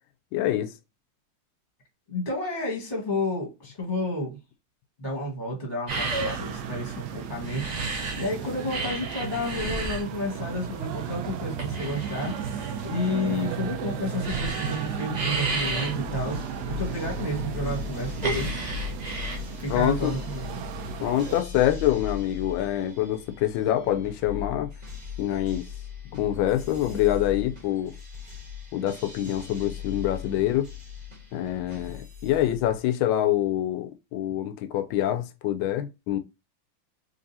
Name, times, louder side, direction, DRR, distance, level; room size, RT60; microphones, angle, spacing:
voice 1, 0.3-0.7 19.7-20.1 21.0-24.7 25.2-25.7 26.1-27.9 28.7-30.7 31.3-36.2, left 12 dB, 75° left, 1.3 m, -25 dB
voice 2, 2.1-4.4 5.0-18.6 19.6-20.6, left 1 dB, 25° left, 1.3 m, -31 dB
sound 1, 5.9-8.3 8.6-19.4, right 2 dB, 50° right, 0.5 m, -33 dB
sound 2, 5.9-21.4, right 7 dB, 90° right, 0.9 m, -34 dB
sound 3, 15.4-32.8, left 8 dB, 25° right, 1.5 m, -39 dB
3.9 x 3.2 x 2.6 m
omnidirectional pair, 2.3 m